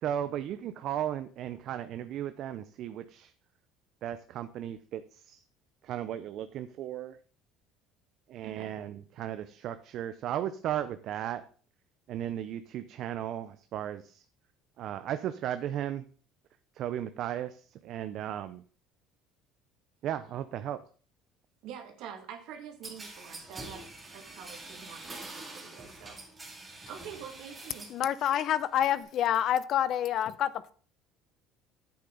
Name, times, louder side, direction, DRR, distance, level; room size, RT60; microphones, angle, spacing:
voice 1, 0.0-3.3 4.0-5.4 5.8-7.2 8.3-11.4 12.1-14.2 14.8-16.1 16.7-18.6 20.0-20.8, right 11 dB, 50° right, 11 dB, 0.6 m, -35 dB
voice 2, 21.6-23.8 24.1-26.2 26.5-27.9, right 8 dB, 65° right, 5 dB, 2.2 m, -46 dB
sound 1, 22.8-28.0 28.4-29.0, right 2 dB, 15° right, 2.5 m, -45 dB
voice 3, 27.9-30.7, left 10 dB, 45° left, 16 dB, 0.6 m, -28 dB
10.0 x 8.7 x 3.9 m, 0.42 s
cardioid pair, 145°, 0 cm